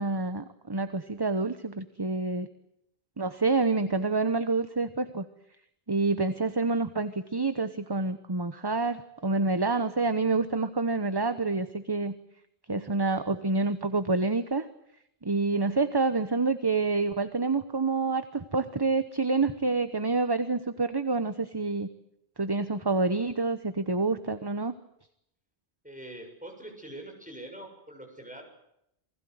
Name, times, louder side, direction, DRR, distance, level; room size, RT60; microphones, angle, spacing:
voice 1, 0.0-2.5 3.2-5.2 5.9-12.1 12.7-14.7 15.2-21.9 22.4-24.8, right 3 dB, 25° right, 11 dB, 1.0 m, -27 dB
voice 2, 25.8-28.4, right 1 dB, 5° right, 2 dB, 7.1 m, -44 dB
28.5 x 20.5 x 8.0 m, 0.79 s
omnidirectional pair, 1.1 m